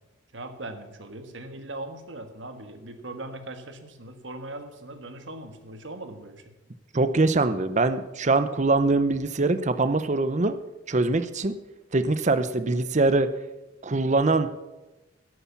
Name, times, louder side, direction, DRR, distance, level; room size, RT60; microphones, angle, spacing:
voice 1, 0.3-6.4, right 2 dB, 65° right, 7 dB, 1.5 m, -39 dB
voice 2, 6.9-10.6 10.9-11.5 11.9-13.3 13.8-14.5, right 3 dB, 35° right, 11 dB, 0.7 m, -23 dB
11.5 x 8.5 x 7.1 m, 1.0 s
head